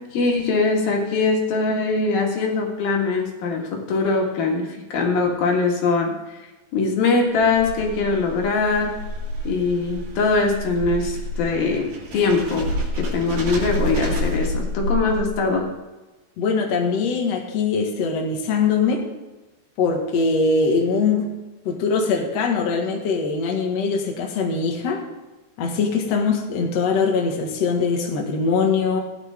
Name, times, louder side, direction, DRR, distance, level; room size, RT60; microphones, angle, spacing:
voice 1, 0.1-6.5 6.7-9.0 9.5-12.7 12.9-15.7, left 3 dB, 75° left, 1 dB, 3.7 m, -22 dB
sound 1, 7.3-15.6, equal, 90° right, 4.5 m, -29 dB
voice 2, 16.4-19.0 19.8-21.3 21.7-25.0 25.6-29.0, left 4 dB, 50° left, 1 dB, 2.4 m, -22 dB
16.5 x 10.0 x 3.7 m, 1.1 s
omnidirectional pair, 4.3 m